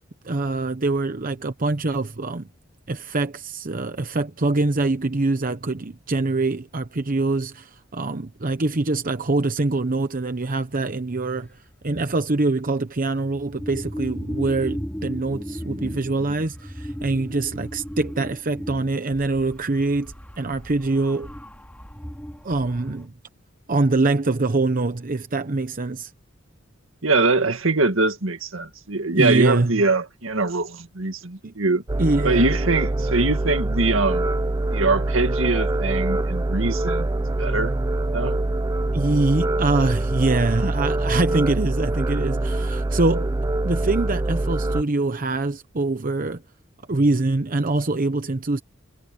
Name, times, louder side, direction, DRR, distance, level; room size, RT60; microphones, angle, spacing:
voice 1, 0.2-2.5 2.9-11.5 11.8-21.3 22.4-23.1 23.7-26.1 29.1-29.8 31.4-31.5 32.0-32.5 38.9-43.3 43.6-46.4 46.9-48.6, right 2 dB, 45° right, 0.9 m, -24 dB
sound 1, 11.3-11.5 11.7-12.2 13.1-23.1, equal, 5° left, 3.9 m, -36 dB
voice 2, 27.0-31.8 32.2-34.3 34.7-37.1 37.4-37.7 38.1-38.4, right 3 dB, 75° right, 2.0 m, -22 dB
sound 2, 31.9-44.8, right 2 dB, 20° right, 0.4 m, -24 dB
head